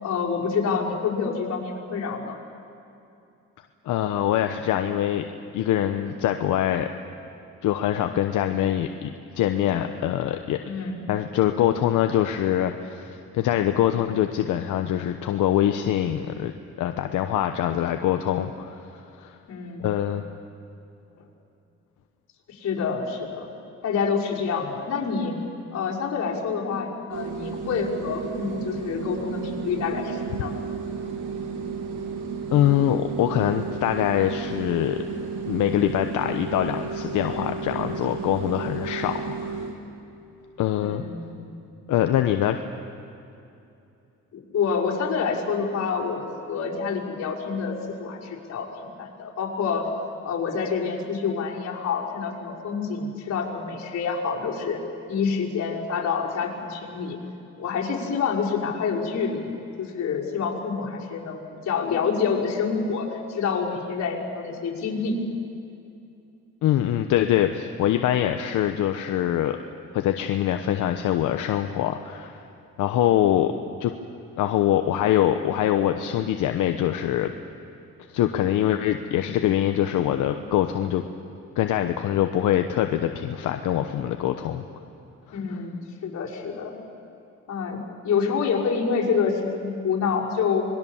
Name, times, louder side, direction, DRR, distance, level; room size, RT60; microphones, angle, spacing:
voice 1, 0.0-2.4 10.6-11.0 19.5-19.9 22.5-23.5 23.8-25.4 25.7-30.6 40.8-41.4 44.3-49.9 50.2-54.8 55.1-57.2 57.6-65.2 85.3-86.7 87.5-90.7, left 5 dB, 60° left, -4 dB, 5.6 m, -27 dB
voice 2, 3.8-5.3 5.5-6.9 7.6-10.6 11.1-18.9 19.2-19.4 19.8-20.2 32.5-35.0 35.5-39.6 40.6-41.0 41.9-42.6 66.6-69.6 69.9-72.4 72.8-73.5 73.8-73.9 74.4-77.3 78.1-81.0 81.6-84.6 85.3-85.4, left 11 dB, 85° left, 6 dB, 1.0 m, -24 dB
sound 1, 27.1-39.8, right 5 dB, 90° right, 2.9 m, -33 dB
26.5 x 22.0 x 7.3 m, 2.7 s
cardioid pair, 90°, 30 cm